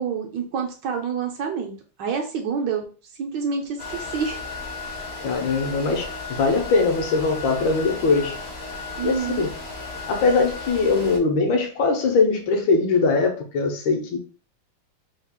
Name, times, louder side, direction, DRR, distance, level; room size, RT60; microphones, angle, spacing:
voice 1, 0.0-1.7 2.0-2.9 3.2-4.4 9.0-9.5, right 6 dB, 70° right, 1.2 m, -27 dB
sound 1, 3.8-11.2, left 3 dB, 50° left, 0.7 m, -35 dB
voice 2, 5.2-8.4 9.0-9.5 10.1-14.2, left 4 dB, 75° left, 1.5 m, -21 dB
3.6 x 2.3 x 3.5 m
omnidirectional pair, 2.2 m